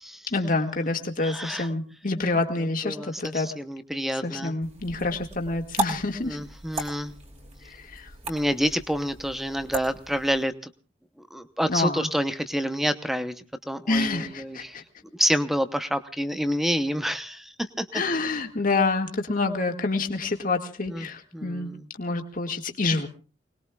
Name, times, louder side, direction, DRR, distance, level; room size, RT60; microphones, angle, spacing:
voice 1, 0.3-3.5 4.2-6.4 7.7-8.1 11.7-12.1 13.9-14.8 17.9-21.7 22.0-23.1, left 3 dB, 45° left, 4 dB, 1.9 m, -27 dB
voice 2, 1.2-1.7 2.8-4.6 6.2-7.1 8.3-10.5 11.3-13.3 13.7-14.7 15.1-17.4 17.8-17.9 20.9-21.1 21.3-21.9, equal, ahead, 10 dB, 0.8 m, -28 dB
sound 1, 4.6-10.4, right 2 dB, 35° right, 3.0 m, -36 dB
29.0 x 20.0 x 2.3 m, 0.35 s
head